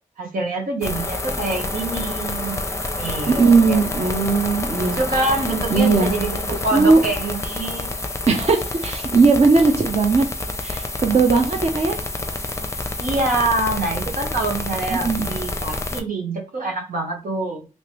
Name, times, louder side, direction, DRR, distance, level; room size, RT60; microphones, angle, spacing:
voice 1, 0.2-2.6 2.9-4.3 4.8-7.9 13.0-17.6, right 2 dB, 90° right, 0 dB, 1.2 m, -26 dB
sound 1, 0.8-16.0, left 2 dB, 20° left, 0.5 m, -28 dB
voice 2, 3.3-5.0 5.7-6.1 6.7-7.0 8.3-10.3 10.6-12.0 14.9-15.3, right 4 dB, 50° right, 4 dB, 0.6 m, -18 dB
3.2 x 3.0 x 2.9 m, 0.33 s
wide cardioid pair, 75°, 14 cm